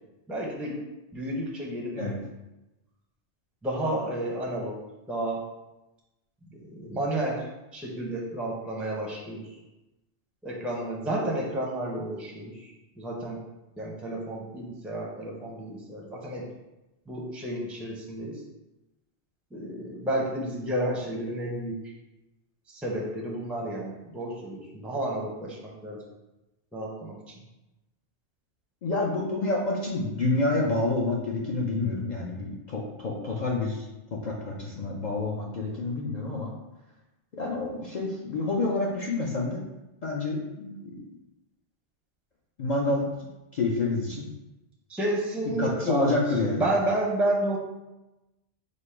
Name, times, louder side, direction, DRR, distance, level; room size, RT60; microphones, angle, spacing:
voice 1, 0.3-0.8 1.1-2.2 3.6-4.8 5.1-5.4 6.5-7.5 7.7-9.5 10.4-13.4 13.8-16.4 17.1-18.4 19.5-21.8 22.7-26.0 26.7-27.3 44.9-46.1 46.4-47.6, right 1 dB, ahead, -2 dB, 0.5 m, -31 dB
voice 2, 28.8-33.8 34.1-36.5 37.3-39.6 40.0-41.0 42.6-43.0 43.5-44.3 45.6-46.7, left 2 dB, 50° left, -3 dB, 0.6 m, -28 dB
5.1 x 2.0 x 4.4 m, 0.99 s
omnidirectional pair, 1.2 m